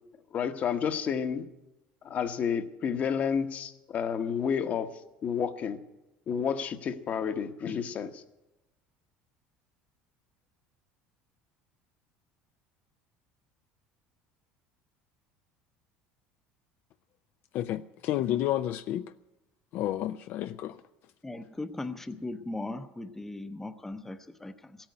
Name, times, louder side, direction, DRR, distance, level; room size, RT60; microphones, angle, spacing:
voice 1, 0.3-1.4 2.0-4.9 5.2-5.8 6.3-8.2, left 7 dB, 40° left, 1.0 m, -30 dB
voice 2, 17.5-19.1 19.7-20.8, left 13 dB, 55° left, 0.4 m, -30 dB
voice 3, 21.2-24.8, left 2 dB, 10° left, 0.7 m, -38 dB
15.0 x 8.9 x 9.4 m
cardioid pair, 120°, 4 cm